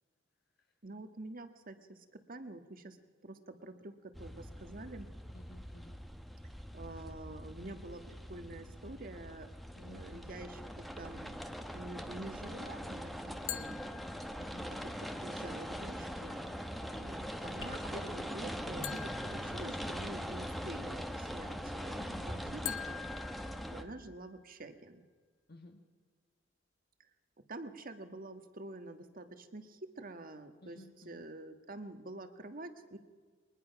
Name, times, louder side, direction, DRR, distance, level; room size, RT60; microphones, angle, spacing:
voice 1, 0.8-3.0 3.2-5.1 6.7-9.5 9.7-11.3 11.7-13.8 14.8-23.0 23.7-25.1 27.5-30.8 31.0-33.0, right 2 dB, 50° right, 8 dB, 1.5 m, -47 dB
sound 1, 4.1-23.8, equal, ahead, 1.1 m, -42 dB
voice 2, 5.3-6.0 9.8-10.3 14.4-14.7 22.0-22.6 25.5-25.8 30.6-31.2, left 1 dB, 55° left, 3 dB, 1.6 m, -54 dB
sound 2, 13.5-14.8 18.8-20.4 22.7-24.4, left 11 dB, 75° left, 0.8 m, -45 dB
sound 3, 17.6-24.1, equal, 25° left, 2.5 m, -49 dB
22.5 x 20.0 x 5.8 m, 1.5 s
head